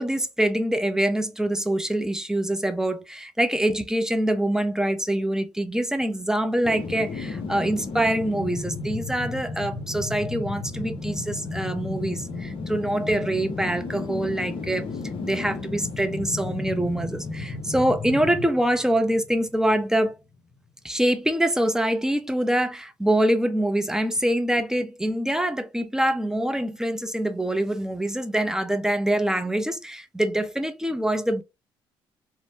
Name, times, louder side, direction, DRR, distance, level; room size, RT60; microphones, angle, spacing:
voice 1, 0.0-14.9 15.2-20.2 20.8-31.4, right 1 dB, 5° right, 0.6 m, -25 dB
sound 1, 6.6-19.7 20.0-20.1, left 3 dB, 50° left, 0.8 m, -33 dB
2.9 x 2.0 x 2.8 m
supercardioid pair, 60°, 11 cm